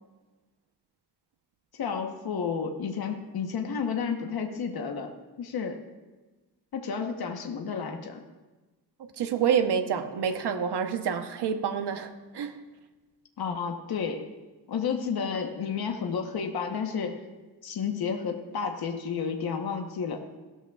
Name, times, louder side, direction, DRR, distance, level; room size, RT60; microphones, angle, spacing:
voice 1, 1.7-5.1 5.4-5.8 6.7-8.2 13.4-14.3 14.7-17.2 17.6-20.2, left 6 dB, 65° left, 4 dB, 1.1 m, -31 dB
voice 2, 9.0-12.6, right 7 dB, 85° right, 7 dB, 1.0 m, -28 dB
17.0 x 13.0 x 2.4 m, 1.2 s
wide cardioid pair, 165°, 39 cm